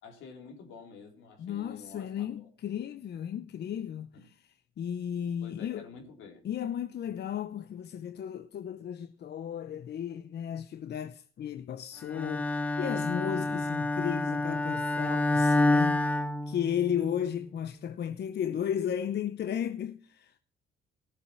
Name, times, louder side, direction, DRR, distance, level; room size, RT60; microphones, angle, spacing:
voice 1, 0.0-2.5 4.1-4.2 5.4-6.5 7.0-7.2 13.4-13.7, left 5 dB, 90° left, 3.8 m, -49 dB
voice 2, 1.4-4.4 4.8-5.9 6.4-20.4, left 9 dB, 55° left, 0.8 m, -34 dB
Bowed string instrument, 12.1-17.1, left 2 dB, 5° left, 0.8 m, -28 dB
18.0 x 7.2 x 5.8 m
cardioid pair, 90°, 20 cm